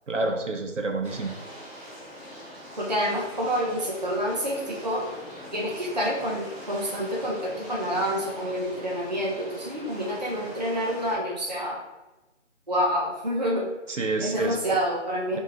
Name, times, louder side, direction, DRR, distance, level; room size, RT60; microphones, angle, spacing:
voice 1, 0.1-1.3 14.0-14.6 15.3-15.4, right 2 dB, 75° right, 3 dB, 0.7 m, -28 dB
sound 1, 1.0-11.1, equal, 10° left, 1.3 m, -42 dB
voice 2, 2.8-5.1 5.5-11.8 12.7-13.7 14.2-15.4, equal, 35° right, -4 dB, 0.5 m, -28 dB
4.7 x 2.7 x 2.7 m, 1.1 s
figure-of-eight pair, 165°, 37 cm